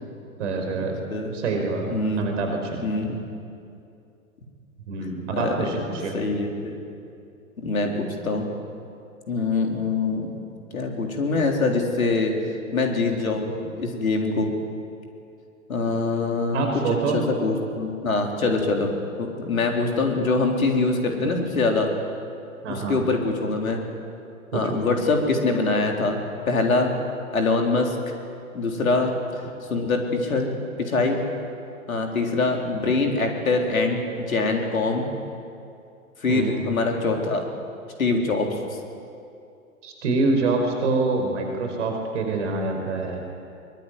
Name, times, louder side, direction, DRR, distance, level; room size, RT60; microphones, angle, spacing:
voice 1, 0.4-1.0 1.3-2.9 4.9-6.2 16.5-17.2 22.6-23.0 24.5-24.8 36.3-36.6 39.8-43.2, right 3 dB, 55° right, 3 dB, 5.1 m, -26 dB
voice 2, 1.9-2.2 2.8-3.2 5.0-5.7 6.1-6.8 7.6-8.5 9.3-10.3 10.7-12.3 12.7-14.5 15.7-16.7 17.1-18.9 19.2-21.9 22.7-23.8 24.5-26.2 26.5-26.9 27.3-28.0 28.5-29.4 29.7-30.5 30.8-31.2 31.9-34.0 34.3-35.0 36.2-37.5 38.0-38.6, left 3 dB, 70° left, 2 dB, 4.1 m, -24 dB
23.0 x 22.0 x 9.5 m, 2.5 s
figure-of-eight pair, 105°, 42 cm